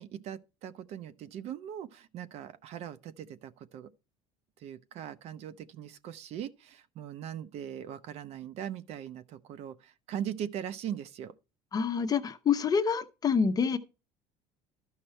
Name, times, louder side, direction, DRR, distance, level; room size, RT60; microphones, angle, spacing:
voice 1, 0.0-3.9 4.6-11.3, right 10 dB, 55° right, 0.8 m, -40 dB
voice 2, 11.7-13.8, left 6 dB, 30° left, 0.8 m, -27 dB
11.5 x 5.8 x 4.4 m
supercardioid pair, 110°, 13 cm